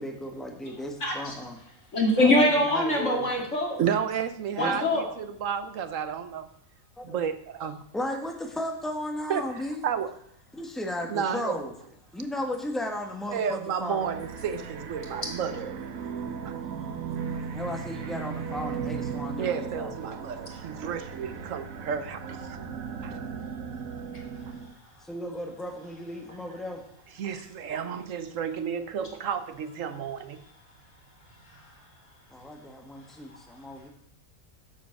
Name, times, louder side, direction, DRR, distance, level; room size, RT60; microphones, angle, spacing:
voice 1, 0.0-1.6 2.2-3.2 4.6-4.7 7.0-7.2 7.9-9.9 10.5-11.7 12.1-14.2 17.5-19.9 25.0-26.8 32.3-33.9, left 1 dB, ahead, 1.5 m, -35 dB
voice 2, 1.0-1.3 1.9-3.8 4.5-5.0, left 1 dB, 60° left, 3.0 m, -23 dB
voice 3, 3.8-6.5 7.0-7.8 9.3-10.1 11.1-11.7 13.3-15.8 16.4-16.6 19.4-22.6 23.0-23.2 27.2-30.4, right 7 dB, 70° right, 1.1 m, -32 dB
sound 1, 13.9-24.7, right 6 dB, 90° right, 1.3 m, -36 dB
11.0 x 7.5 x 6.0 m
omnidirectional pair, 1.4 m